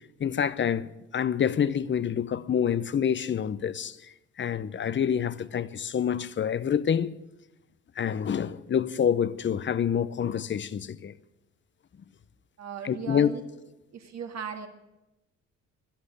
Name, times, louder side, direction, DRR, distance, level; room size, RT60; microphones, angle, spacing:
voice 1, 0.2-4.0 4.4-7.1 8.0-11.1 12.8-13.3, left 8 dB, 40° left, 0.8 m, -27 dB
voice 2, 12.6-13.4 13.9-14.7, right 6 dB, 60° right, 2.2 m, -37 dB
12.0 x 11.5 x 9.9 m
cardioid pair, 90°, 30 cm